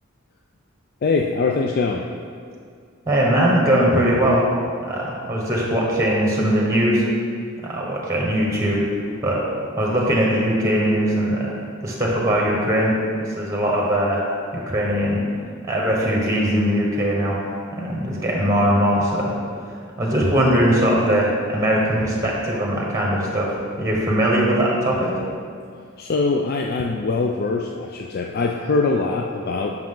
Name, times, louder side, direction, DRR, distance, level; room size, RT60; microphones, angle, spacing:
voice 1, 1.0-2.1 26.0-29.8, left 3 dB, 50° left, 1 dB, 0.4 m, -22 dB
voice 2, 3.1-4.4 4.9-7.0 7.6-8.9 9.2-9.4 9.8-11.5 11.8-12.9 13.3-14.2 14.7-15.2 15.6-17.4 17.7-19.4 19.6-23.5 23.8-25.1, equal, 15° right, -3 dB, 1.2 m, -20 dB
7.5 x 5.8 x 3.8 m, 2.2 s
head